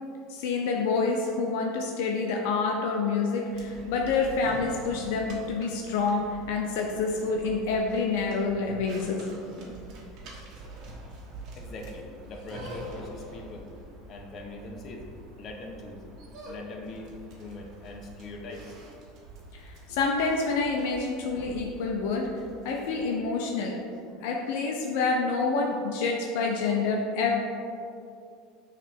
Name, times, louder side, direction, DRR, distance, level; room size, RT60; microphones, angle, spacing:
voice 1, 0.3-9.2 19.5-22.3 22.6-23.8 24.2-27.4, left 4 dB, 75° left, 1 dB, 0.6 m, -27 dB
sound 1, 3.5-23.1, right 2 dB, 55° right, 1.5 m, -46 dB
voice 2, 11.6-13.7 14.1-15.1 15.4-16.0 16.4-17.1 17.4-18.7, left 2 dB, 40° left, 1 dB, 1.0 m, -41 dB
6.5 x 3.3 x 5.3 m, 2.5 s
supercardioid pair, 105°, 0 cm